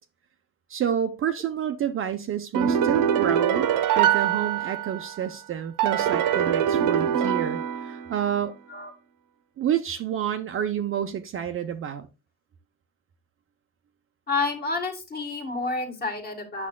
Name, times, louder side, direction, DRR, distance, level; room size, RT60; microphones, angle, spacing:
voice 1, 0.7-3.7 3.9-8.6 9.6-12.1, right 9 dB, 35° right, 0.6 m, -29 dB
sound 1, 2.5-5.2 5.8-8.3, right 9 dB, 60° right, 1.0 m, -23 dB
voice 2, 14.3-16.7, left 3 dB, 25° left, 1.9 m, -29 dB
8.4 x 6.3 x 2.2 m
cardioid pair, 130°, 36 cm